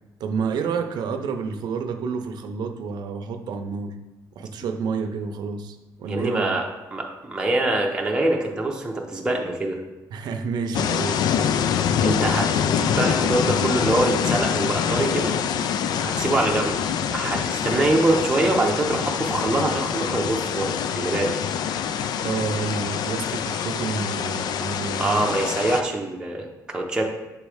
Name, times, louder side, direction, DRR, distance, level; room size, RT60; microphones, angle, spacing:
voice 1, 0.2-3.9 4.3-6.6 10.1-11.2 22.2-25.4, right 5 dB, 75° right, 7 dB, 0.6 m, -29 dB
voice 2, 6.1-6.7 6.9-9.8 12.0-15.4 16.0-16.8 17.1-21.3 25.0-27.1, right 2 dB, 10° right, -1 dB, 0.7 m, -24 dB
sound 1, 10.7-25.8, left 8 dB, 70° left, 0.3 m, -25 dB
6.9 x 3.1 x 4.9 m, 1.0 s
cardioid pair, 145°, 7 cm